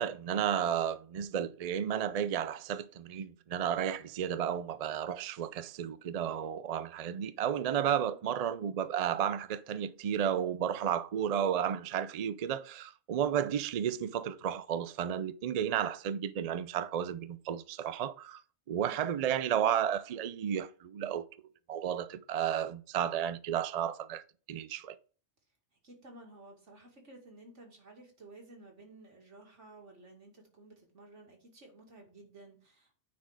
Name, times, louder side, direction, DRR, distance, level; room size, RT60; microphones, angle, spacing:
voice 1, 0.0-18.4 18.7-21.2 21.7-24.2 24.5-25.0, right 9 dB, 55° right, 0.4 m, -32 dB
voice 2, 25.8-33.0, right 2 dB, 80° right, 2.5 m, -54 dB
9.4 x 4.3 x 4.8 m
omnidirectional pair, 1.2 m